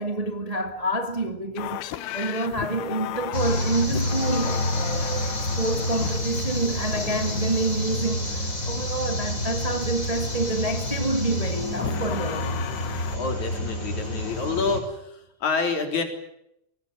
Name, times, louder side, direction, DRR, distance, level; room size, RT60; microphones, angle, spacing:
voice 1, 0.0-5.2 5.6-8.4 8.6-12.4, right 2 dB, 35° right, 0.5 m, -28 dB
sound 1, 1.6-7.9 11.8-13.2, left 13 dB, 80° left, 3.1 m, -35 dB
sound 2, 3.3-14.8, left 1 dB, 20° left, 6.5 m, -28 dB
voice 2, 13.1-16.0, left 4 dB, 50° left, 4.9 m, -28 dB
24.0 x 20.0 x 9.7 m
omnidirectional pair, 4.6 m